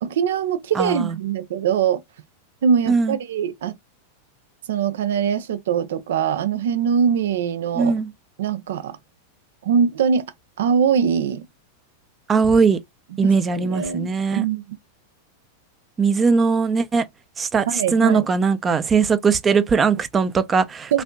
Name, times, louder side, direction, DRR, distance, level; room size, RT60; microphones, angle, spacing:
voice 1, 0.0-2.0 2.6-3.7 4.7-8.0 8.4-9.0 9.6-10.3 10.6-11.4 13.2-14.6 17.7-18.3 20.9-21.0, right 7 dB, 70° right, 0.6 m, -22 dB
voice 2, 0.8-1.2 2.9-3.2 7.7-8.1 12.3-12.8 13.2-14.4 16.0-17.0 17.4-21.0, right 5 dB, 20° right, 0.6 m, -20 dB
4.1 x 2.8 x 2.4 m
hypercardioid pair, 100°, 0 cm